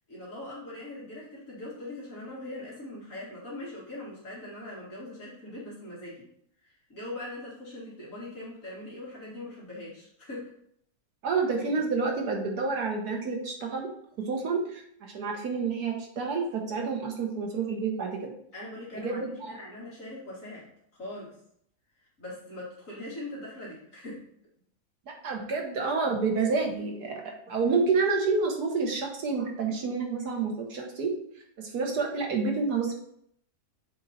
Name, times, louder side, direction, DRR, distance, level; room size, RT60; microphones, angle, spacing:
voice 1, 0.1-6.3 6.6-10.5 18.5-20.7 21.0-21.4 22.0-24.2, left 1 dB, 55° left, -7 dB, 2.5 m, -41 dB
voice 2, 11.2-13.9 14.2-18.3 18.9-19.6 25.2-31.1 31.6-32.9, right 4 dB, 85° right, 1 dB, 1.8 m, -29 dB
7.3 x 4.0 x 4.2 m, 0.70 s
omnidirectional pair, 1.6 m